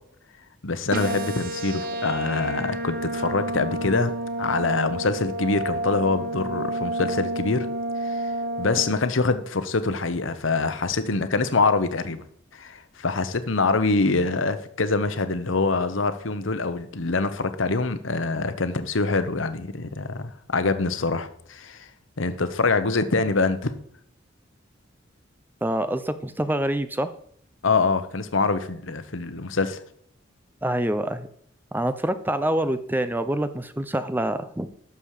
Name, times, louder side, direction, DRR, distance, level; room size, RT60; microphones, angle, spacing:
voice 1, 0.6-7.7 8.0-12.2 12.5-21.9 22.2-23.7 27.6-29.8, left 3 dB, 85° left, 11 dB, 1.0 m, -25 dB
sound 1, 0.9-8.9, right 1 dB, 45° right, 0.9 m, -30 dB
voice 2, 25.6-27.1 30.6-31.3 31.7-34.7, right 1 dB, 10° right, 11 dB, 0.5 m, -26 dB
11.5 x 6.9 x 4.9 m, 0.65 s
head